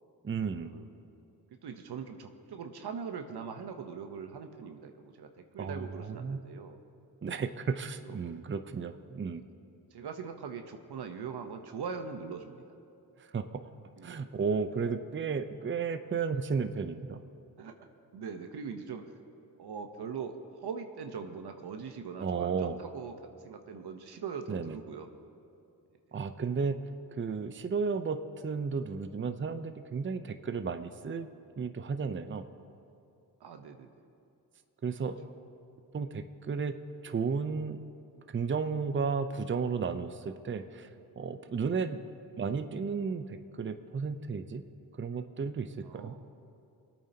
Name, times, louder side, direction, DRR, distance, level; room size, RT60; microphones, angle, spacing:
voice 1, 0.2-0.7 5.6-6.4 7.2-9.4 13.2-13.6 14.0-17.2 22.2-22.8 24.5-24.8 26.1-26.8 27.1-28.2 28.4-31.3 31.6-32.5 34.8-35.2 35.9-36.7 37.0-37.8 38.3-40.9 41.2-42.0 42.4-44.6 45.0-46.1, right 5 dB, 25° right, 9 dB, 0.7 m, -33 dB
voice 2, 1.6-6.8 8.0-8.2 9.9-12.6 14.0-14.2 14.7-14.9 17.6-17.8 18.1-19.0 19.6-25.1 33.4-33.9 41.6-41.9 45.8-46.2, right 6 dB, 65° right, 6 dB, 1.0 m, -41 dB
25.5 x 8.9 x 2.9 m, 2.6 s
supercardioid pair, 55°, 43 cm